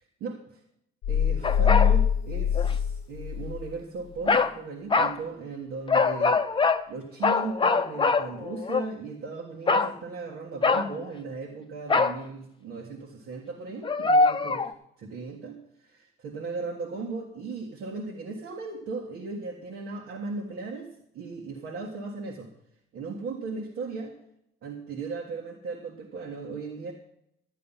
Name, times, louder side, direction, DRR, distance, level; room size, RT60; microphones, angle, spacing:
sound 1, 1.0-3.7, left 8 dB, 85° left, 0.8 m, -24 dB
voice 1, 1.1-14.6 15.0-22.5 22.9-24.1 24.6-26.9, right 4 dB, 80° right, 0 dB, 1.6 m, -37 dB
sound 2, 1.4-2.0 2.5-2.7 4.3-4.5 4.9-5.2 5.9-6.8 7.2-8.9 9.7-9.9 10.6-11.0 11.9-12.2 13.8-14.7, left 4 dB, 25° left, 0.6 m, -23 dB
13.0 x 8.6 x 5.6 m, 0.76 s
cardioid pair, 90°, 20 cm